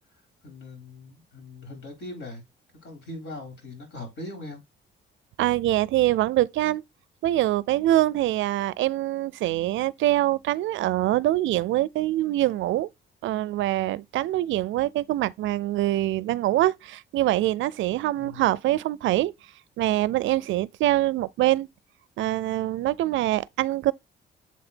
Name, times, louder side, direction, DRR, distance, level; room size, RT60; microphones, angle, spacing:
voice 1, 0.4-2.4 2.8-4.6 18.1-18.4, left 2 dB, 65° left, 4.4 m, -40 dB
voice 2, 5.4-6.8 7.2-12.9 13.2-19.3 19.8-21.7 22.2-23.9, right 15 dB, 75° right, 0.4 m, -24 dB
7.4 x 3.9 x 4.2 m
cardioid pair, 90°, 20 cm